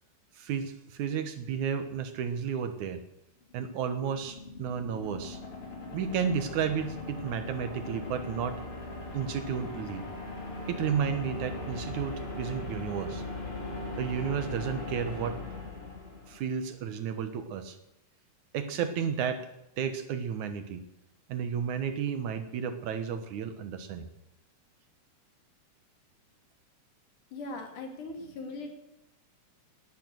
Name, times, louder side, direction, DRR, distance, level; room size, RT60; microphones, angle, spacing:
voice 1, 0.4-3.0 3.5-5.4 5.9-8.6 9.1-10.1 10.7-13.2 14.0-15.4 16.3-17.8 18.5-19.5 19.8-20.8 21.3-24.1, right 7 dB, 70° right, 9 dB, 2.6 m, -32 dB
sound 1, 3.4-16.6, left 2 dB, 45° left, 4.0 m, -39 dB
voice 2, 27.3-28.8, left 2 dB, 75° left, 3 dB, 4.2 m, -39 dB
18.5 x 11.5 x 6.4 m, 0.86 s
omnidirectional pair, 3.6 m